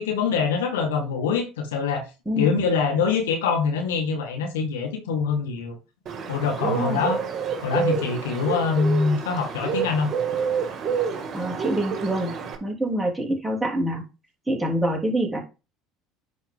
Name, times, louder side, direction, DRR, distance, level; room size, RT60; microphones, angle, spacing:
voice 1, 0.0-2.0 2.4-5.8 6.3-7.2 7.6-10.1, left 5 dB, 80° left, 1.9 m, -24 dB
Bird, 6.1-12.6, right 6 dB, 45° right, 2.1 m, -28 dB
voice 2, 6.6-7.0 11.3-12.3 12.6-14.0 14.5-15.4, right 1 dB, 5° right, 3.3 m, -26 dB
9.9 x 4.4 x 3.8 m
hypercardioid pair, 70°, 0 cm